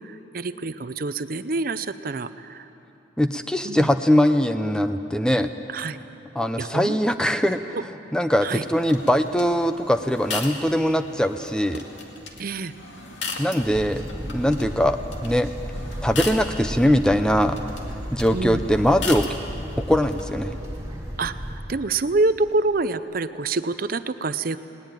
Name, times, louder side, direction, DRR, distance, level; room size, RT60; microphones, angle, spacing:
voice 1, 0.0-2.7 3.6-3.9 5.7-6.0 6.6-7.0 7.7-7.8 8.4-8.6 12.4-12.7 18.3-18.6 21.2-24.6, right 3 dB, 45° right, 12 dB, 0.6 m, -26 dB
voice 2, 3.2-5.5 6.4-7.8 8.1-11.8 13.4-15.5 16.0-17.6 17.9-19.2 19.8-20.5, equal, 5° left, 9 dB, 0.5 m, -21 dB
Rowing Machine With Hawk, 8.3-20.2, left 3 dB, 70° left, 2.3 m, -38 dB
sound 1, 13.6-21.6, equal, 15° right, 3.3 m, -34 dB
20.0 x 19.0 x 9.1 m, 2.9 s
head